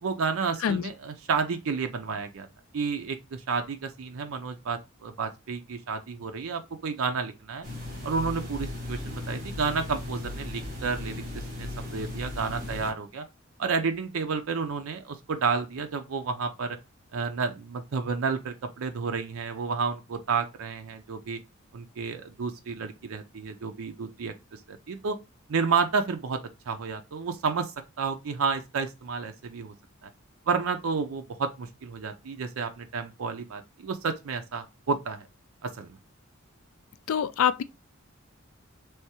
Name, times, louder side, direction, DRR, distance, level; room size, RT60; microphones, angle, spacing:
voice 1, 0.0-2.5 2.7-7.7 8.0-11.1 11.6-13.2 13.6-16.8 17.1-21.4 21.7-24.3 24.7-25.2 25.5-26.4 26.7-27.7 28.0-29.7 30.0-30.1 30.5-35.3 35.6-35.9, right 5 dB, 90° right, 0.5 m, -31 dB
sound 1, 7.6-12.9, left 2 dB, 40° right, 1.7 m, -36 dB
voice 2, 37.1-37.6, left 8 dB, 85° left, 0.3 m, -25 dB
3.4 x 3.1 x 2.9 m
head